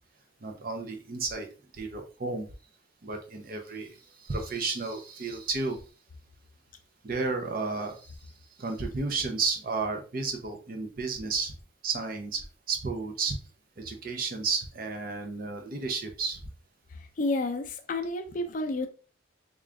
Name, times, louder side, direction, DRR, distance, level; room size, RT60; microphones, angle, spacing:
voice 1, 0.4-1.5 1.7-2.5 3.0-5.8 7.0-8.3 8.6-11.5 11.8-13.4 13.8-16.4, right 4 dB, 45° right, 0.6 m, -32 dB
voice 2, 16.9-18.9, left 2 dB, 40° left, 0.4 m, -31 dB
3.7 x 2.4 x 3.2 m
head